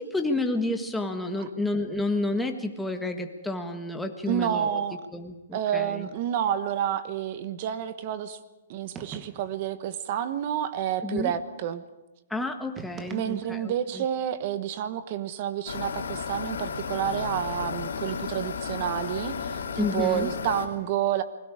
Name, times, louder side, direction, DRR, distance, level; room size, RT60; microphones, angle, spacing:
voice 1, 0.0-4.8 5.1-6.1 11.0-11.3 12.3-14.0 19.8-20.3, left 2 dB, 5° left, 4 dB, 1.5 m, -30 dB
voice 2, 4.3-5.0 5.5-8.4 8.7-11.8 13.1-21.2, right 10 dB, 40° right, 12 dB, 1.2 m, -29 dB
sound 1, 8.9-9.7 12.7-13.8, right 6 dB, 15° right, 1.2 m, -43 dB
sound 2, 15.7-20.7, left 6 dB, 80° left, 3.1 m, -33 dB
29.0 x 21.0 x 4.9 m, 1.0 s
hypercardioid pair, 160°, 0 cm